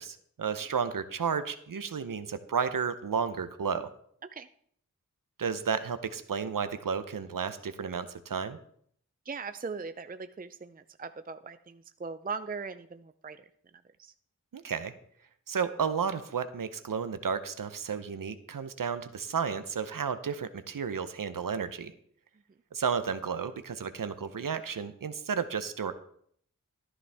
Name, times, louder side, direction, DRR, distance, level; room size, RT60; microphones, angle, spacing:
voice 1, 0.0-3.9 5.4-8.6 14.5-14.9 15.5-21.9 22.7-25.9, right 6 dB, 85° right, 11 dB, 0.7 m, -32 dB
voice 2, 9.3-13.4 14.0-14.1, right 5 dB, 25° right, 10 dB, 0.5 m, -39 dB
13.5 x 9.8 x 3.4 m, 0.64 s
wide cardioid pair, 45°, 32 cm